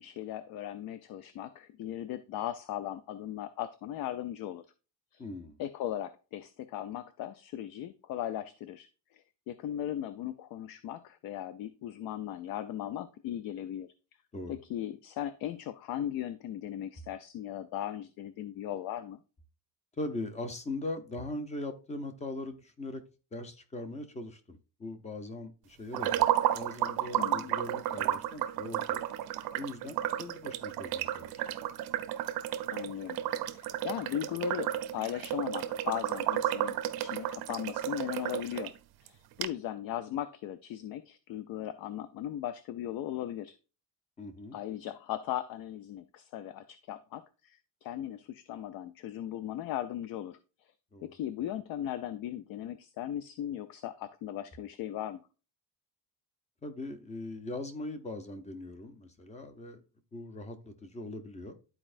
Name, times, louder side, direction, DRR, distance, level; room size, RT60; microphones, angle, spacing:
voice 1, 0.0-4.7 5.1-5.2 5.6-13.9 14.5-19.2 27.2-27.5 32.7-38.7 39.0-43.5 44.5-50.4 51.0-55.2, left 11 dB, 65° left, 12 dB, 0.5 m, -38 dB
voice 2, 5.2-5.6 14.3-14.6 20.0-23.0 23.3-26.3 26.5-29.0 29.6-31.3 44.2-44.6 50.9-51.1 56.6-59.8 60.1-61.6, left 2 dB, 20° left, 8 dB, 0.6 m, -40 dB
sound 1, 25.9-38.7 39.1-39.2 39.4-39.5, right 12 dB, 70° right, 0.6 m, -32 dB
12.0 x 4.3 x 2.5 m, 0.33 s
cardioid pair, 175°, 38 cm